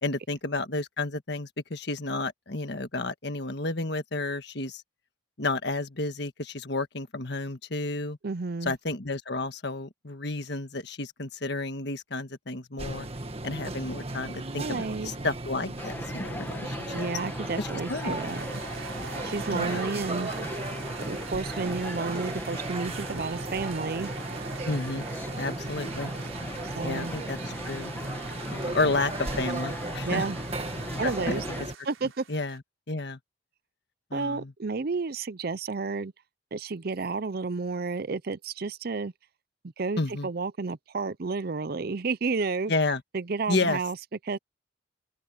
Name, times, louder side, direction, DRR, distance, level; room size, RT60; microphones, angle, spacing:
voice 1, 0.0-4.8 5.4-8.2 8.6-13.1 13.4-17.1 17.6-18.2 19.5-19.8 24.6-25.1 25.4-26.1 26.8-27.4 27.6-27.9 28.5-30.3 31.0-31.6 32.3-32.6 32.9-33.2 34.1-34.5 40.0-40.3 42.7-43.0 43.5-43.8, left 2 dB, 55° left, 1.6 m, -31 dB
voice 2, 8.2-8.7 14.6-15.1 16.9-18.5 19.2-20.3 21.0-24.1 26.6-27.1 30.1-30.4 31.0-31.4 31.9-32.3 34.1-36.1 36.5-39.1 39.8-42.7 43.1-44.0 44.3-44.4, right 4 dB, 50° right, 0.5 m, -31 dB
sound 1, 12.8-31.7, right 2 dB, 30° right, 1.7 m, -36 dB
sound 2, 15.8-31.6, left 1 dB, 10° left, 1.8 m, -41 dB
sound 3, 18.0-32.6, right 6 dB, 80° right, 4.0 m, -46 dB
open air
head